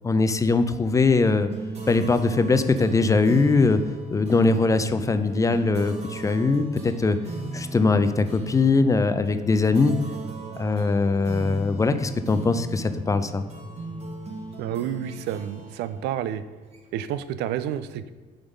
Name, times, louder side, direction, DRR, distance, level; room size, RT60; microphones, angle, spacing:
voice 1, 0.0-1.5 1.9-3.8 4.1-7.2 7.5-9.9 10.6-13.4, left 3 dB, 20° left, 11 dB, 0.4 m, -21 dB
sound 1, 1.2-17.1, right 3 dB, 40° right, 1.4 m, -37 dB
voice 2, 14.6-16.4 16.9-18.1, right 10 dB, 85° right, 13 dB, 0.4 m, -29 dB
7.0 x 3.8 x 5.2 m, 1.4 s
cardioid pair, 110°, 17 cm